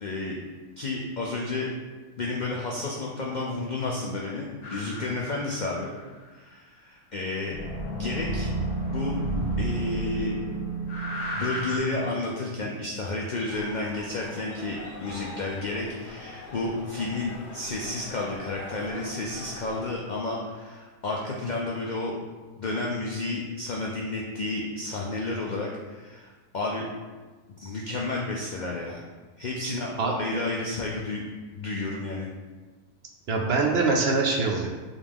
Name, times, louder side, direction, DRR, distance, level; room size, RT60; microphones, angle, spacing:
voice 1, 0.0-0.4 0.8-1.7 2.2-5.9 6.3-7.6 7.9-8.5 8.9-9.2 9.6-10.4 11.3-22.1 22.6-26.9 27.6-29.0 29.4-29.9 30.2-31.2 31.5-32.3, left 2 dB, 90° left, -2 dB, 0.4 m, -31 dB
sound 1, 4.6-6.0 7.5-11.8, right 2 dB, 40° left, 0.7 m, -31 dB
sound 2, 13.5-20.0, left 2 dB, 65° left, 0.9 m, -43 dB
voice 2, 29.6-30.1 33.3-34.7, right 3 dB, 65° right, 1 dB, 0.7 m, -24 dB
5.1 x 2.4 x 3.5 m, 1.3 s
omnidirectional pair, 1.4 m